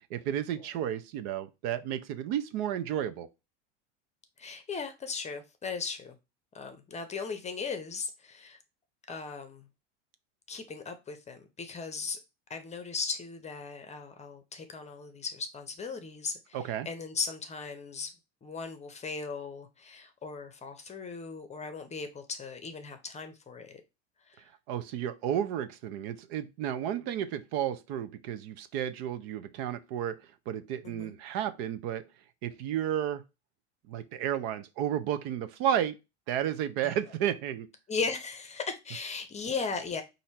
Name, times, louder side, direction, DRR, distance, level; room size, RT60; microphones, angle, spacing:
voice 1, 0.1-3.3 16.5-16.9 24.7-30.2 30.5-32.0 32.4-33.2 33.9-36.0 36.3-37.7, right 10 dB, 60° right, 0.7 m, -32 dB
voice 2, 4.4-6.1 6.5-8.6 9.1-9.7 10.5-12.2 12.5-18.1 18.4-23.8 24.3-24.4 30.8-31.1 36.8-37.0 37.9-40.0, left 4 dB, 20° left, 0.7 m, -37 dB
4.3 x 2.7 x 4.2 m
supercardioid pair, 115°, 34 cm